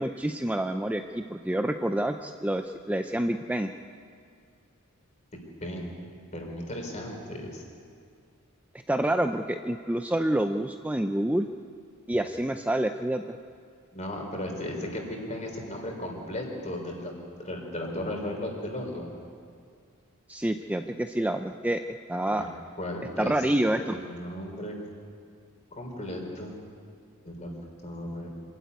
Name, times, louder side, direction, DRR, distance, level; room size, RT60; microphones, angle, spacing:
voice 1, 0.0-3.7 8.9-11.5 12.1-13.2 20.3-21.8 22.1-22.5 23.2-24.0, right 1 dB, 5° right, 6 dB, 0.5 m, -27 dB
voice 2, 6.3-7.6 13.9-17.1 17.4-19.1 22.3-22.5 22.8-23.3 23.9-24.7 25.8-26.5 27.2-27.5 27.8-28.3, left 1 dB, 35° left, 1 dB, 4.1 m, -35 dB
25.5 x 12.5 x 9.4 m, 2.3 s
head